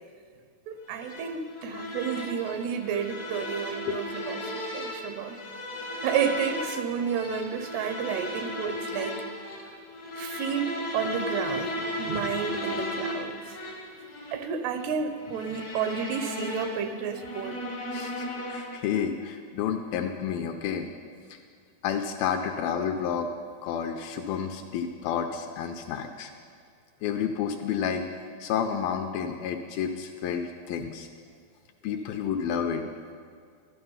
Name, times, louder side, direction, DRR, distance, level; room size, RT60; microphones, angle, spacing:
voice 1, 0.7-5.4 6.0-9.2 10.1-13.4 14.3-17.6 30.8-30.9, right 7 dB, 90° right, 9 dB, 2.8 m, -31 dB
sound 1, 0.9-18.9, left 1 dB, 50° left, 1.0 m, -36 dB
voice 2, 17.9-20.9 21.3-21.4 21.8-23.3 23.6-26.3 27.0-28.1 28.4-31.1 31.8-32.9, left 7 dB, 80° left, 5 dB, 2.1 m, -30 dB
12.0 x 12.0 x 5.5 m, 2.1 s
omnidirectional pair, 4.5 m